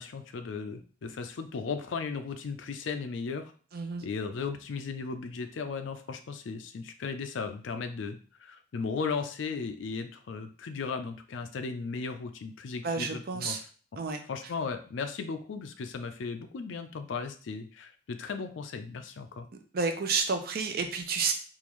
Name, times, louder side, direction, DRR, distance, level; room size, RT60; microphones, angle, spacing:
voice 1, 0.0-3.5 4.0-13.6 14.3-19.5, left 5 dB, 75° left, 8 dB, 0.4 m, -36 dB
voice 2, 3.7-4.0 12.8-13.6 14.0-14.2 19.7-21.3, right 4 dB, 50° right, 6 dB, 0.5 m, -30 dB
3.7 x 2.5 x 3.0 m, 0.41 s
head